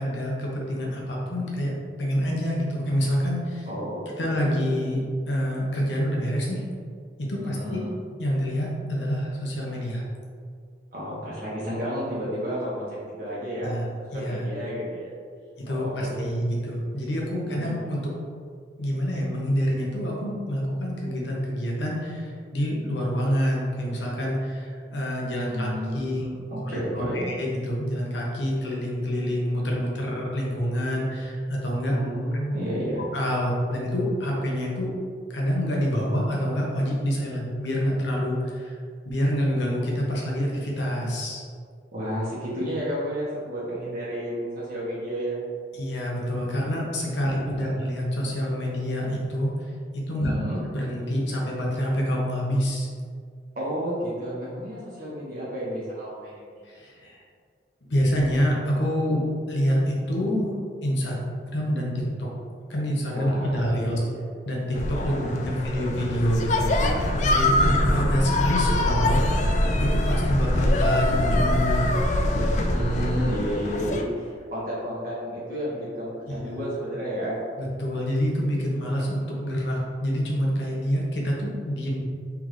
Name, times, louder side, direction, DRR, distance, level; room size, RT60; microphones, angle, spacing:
voice 1, 0.0-3.7 4.2-5.0 5.3-6.6 7.3-7.8 8.2-10.0 13.6-13.8 14.1-14.5 15.7-18.1 18.8-26.2 26.7-31.9 32.5-32.6 33.0-34.9 35.3-38.8 39.0-41.4 45.8-49.5 49.9-50.3 50.7-52.9 56.6-57.2 57.9-60.5 60.8-61.2 61.5-61.9 62.2-62.3 62.7-64.0 64.5-69.2 69.8-71.8 76.3-76.6 77.6-82.0, equal, 85° left, -3 dB, 1.0 m, -27 dB
voice 2, 3.6-4.7 7.5-7.9 10.9-13.8 14.1-15.0 15.7-16.3 17.2-17.7 25.5-27.3 31.9-33.1 41.9-45.4 47.2-47.7 50.2-50.6 53.5-56.5 63.1-64.2 65.1-65.4 65.7-65.8 67.5-68.4 72.7-77.4, equal, 50° right, -8 dB, 1.3 m, -31 dB
sound 1, 64.7-74.0, left 1 dB, 40° left, 0.3 m, -23 dB
3.8 x 3.5 x 3.1 m, 2.1 s
head